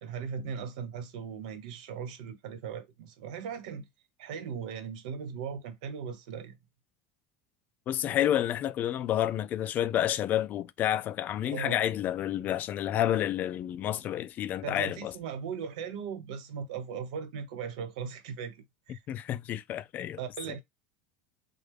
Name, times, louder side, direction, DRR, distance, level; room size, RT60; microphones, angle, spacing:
voice 1, 0.0-3.9 4.2-6.6 11.5-11.8 14.6-18.6 18.9-19.0 20.2-20.6, right 7 dB, 80° right, 1.0 m, -38 dB
voice 2, 7.9-15.1 18.9-20.2 20.5-20.6, left 11 dB, 40° left, 0.3 m, -29 dB
3.8 x 2.2 x 3.4 m
supercardioid pair, 125°, 4 cm